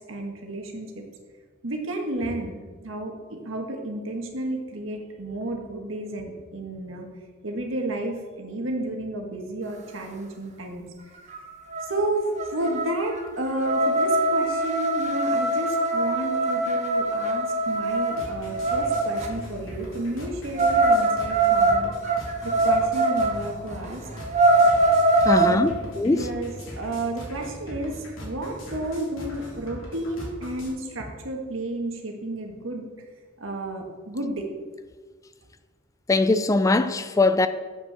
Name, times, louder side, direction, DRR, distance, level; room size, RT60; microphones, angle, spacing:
voice 1, 0.1-1.0 1.6-7.1 7.4-10.8 11.8-21.9 22.4-24.0 25.3-32.9 33.4-34.5, right 1 dB, 80° right, 1.6 m, -32 dB
sound 1, 11.3-11.4 11.7-12.0 12.4-19.3 20.6-23.4 23.8-23.9 24.2-25.6, right 2 dB, 35° right, 0.9 m, -22 dB
sound 2, 18.1-30.7, equal, 85° left, 2.7 m, -40 dB
voice 2, 25.3-26.3 36.1-37.5, left 2 dB, 15° left, 0.3 m, -21 dB
7.6 x 6.2 x 6.6 m
head